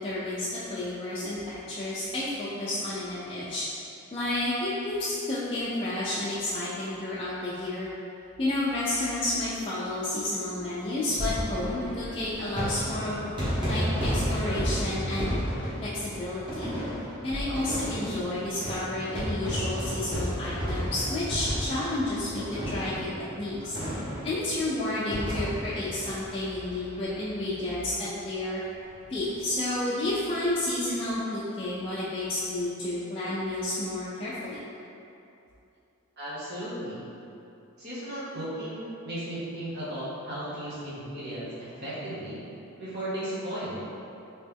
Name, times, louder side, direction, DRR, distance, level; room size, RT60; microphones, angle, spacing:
voice 1, 0.0-3.6 4.1-7.9 8.4-13.2 13.6-15.4 15.8-16.7 17.2-23.1 23.4-23.8 24.2-28.6 29.1-34.6, left 1 dB, 25° left, -10 dB, 0.4 m, -31 dB
sound 1, 11.1-27.1 27.4-27.5 27.7-27.8 29.1-29.3, equal, 20° right, 1.2 m, -32 dB
voice 2, 36.2-37.0 37.8-42.4 42.8-43.8, right 1 dB, 50° right, -9 dB, 1.1 m, -35 dB
3.2 x 2.9 x 3.4 m, 2.8 s
head